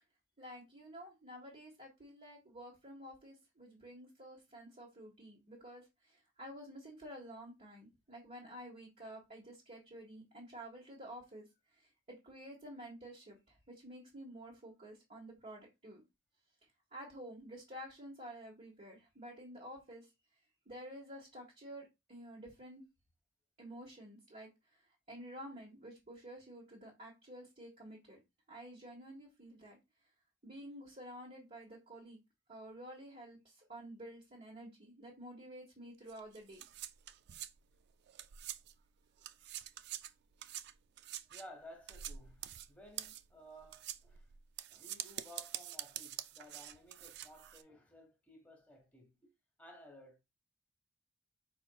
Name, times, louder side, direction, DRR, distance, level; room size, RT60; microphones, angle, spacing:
voice 1, 0.4-11.5 11.8-11.9 12.2-16.0 16.9-20.1 20.6-22.8 23.6-24.5 25.1-28.2 28.5-29.8 30.4-32.2 32.5-36.6, equal, 35° right, 1.4 m, -51 dB
sound 1, 36.1-38.9 39.2-47.6, right 12 dB, 55° right, 0.3 m, -46 dB
voice 2, 41.3-44.2 44.7-49.3 49.6-50.2, equal, 10° left, 1.3 m, -56 dB
5.3 x 4.2 x 2.3 m
head